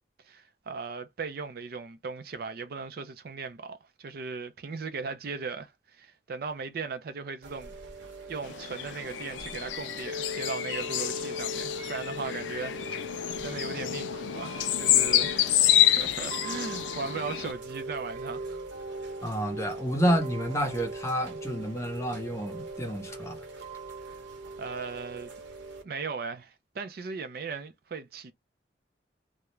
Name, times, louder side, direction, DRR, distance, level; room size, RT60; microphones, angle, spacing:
voice 1, 0.2-7.7 8.3-15.5 16.0-18.6 24.6-25.3 25.8-28.3, right 4 dB, 55° right, 0.4 m, -38 dB
Chime / Rain, 7.4-25.8, equal, 80° right, 0.9 m, -40 dB
sound 1, 8.4-17.5, left 11 dB, 80° left, 0.3 m, -28 dB
voice 2, 19.2-23.4, equal, 15° left, 0.7 m, -29 dB
2.3 x 2.1 x 2.9 m
head